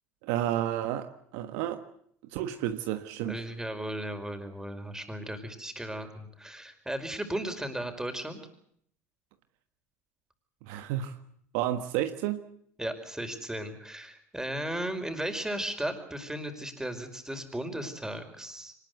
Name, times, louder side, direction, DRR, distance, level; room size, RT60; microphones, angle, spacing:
voice 1, 0.2-1.8 2.3-3.4 10.6-11.2 11.5-12.5, right 12 dB, 65° right, 8 dB, 1.4 m, -31 dB
voice 2, 3.3-8.4 12.8-18.7, right 1 dB, 5° right, 7 dB, 5.1 m, -36 dB
24.5 x 20.0 x 8.1 m, 0.66 s
hypercardioid pair, 70°, 8 cm